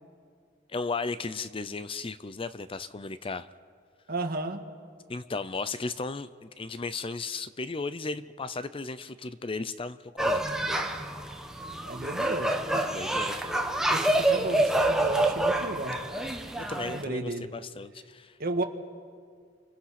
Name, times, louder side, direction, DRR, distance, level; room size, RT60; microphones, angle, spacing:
voice 1, 0.7-3.5 5.1-10.6 12.9-13.7 16.6-18.4, left 3 dB, 30° left, 14 dB, 0.6 m, -35 dB
voice 2, 4.1-4.6 11.9-12.6 13.9-16.0 16.9-17.5 18.4-18.6, right 2 dB, 50° right, 5 dB, 1.8 m, -33 dB
sound 1, 10.2-17.0, right 1 dB, 5° right, 1.3 m, -27 dB
29.0 x 25.5 x 5.9 m, 2.1 s
head